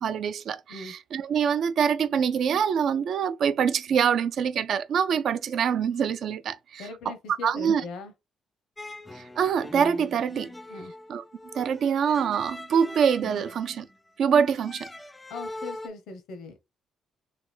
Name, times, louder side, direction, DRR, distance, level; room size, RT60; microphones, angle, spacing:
voice 1, 0.0-7.1 7.4-7.8 9.2-10.5 11.1-11.2 11.5-13.9 14.2-14.9, right 7 dB, 65° right, 0.3 m, -25 dB
voice 2, 6.8-8.1 10.7-10.9 15.3-16.7, left 4 dB, 85° left, 0.6 m, -40 dB
sound 1, 8.8-15.9, left 1 dB, 15° left, 0.3 m, -42 dB
3.3 x 2.2 x 3.1 m
cardioid pair, 90°, 0 cm